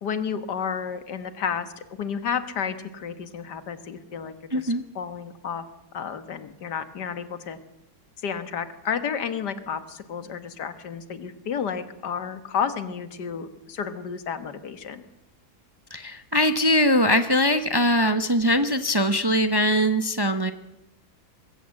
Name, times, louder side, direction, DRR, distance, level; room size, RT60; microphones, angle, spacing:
voice 1, 0.0-5.6 5.9-7.6 8.2-15.0, left 7 dB, 85° left, 11 dB, 2.0 m, -31 dB
voice 2, 4.5-4.8 15.9-20.5, equal, 20° right, 10 dB, 0.7 m, -21 dB
20.5 x 16.5 x 7.7 m, 0.87 s
omnidirectional pair, 1.8 m